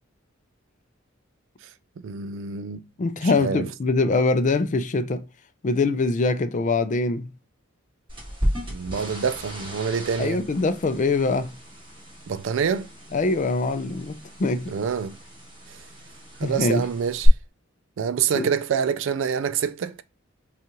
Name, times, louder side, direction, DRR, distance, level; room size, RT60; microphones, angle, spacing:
voice 1, 2.0-2.9 3.2-3.7 8.7-10.4 12.3-12.9 14.7-15.2 15.7-15.8 16.4-17.3 18.0-20.0, right 7 dB, 65° right, 0.4 m, -26 dB
voice 2, 3.0-5.3 5.6-7.3 10.2-11.5 13.1-14.7 16.4-16.9 18.3-18.5, left 3 dB, 40° left, 0.4 m, -23 dB
sound 1, 8.1-17.3, equal, 25° right, 2.2 m, -35 dB
5.4 x 2.4 x 2.9 m
head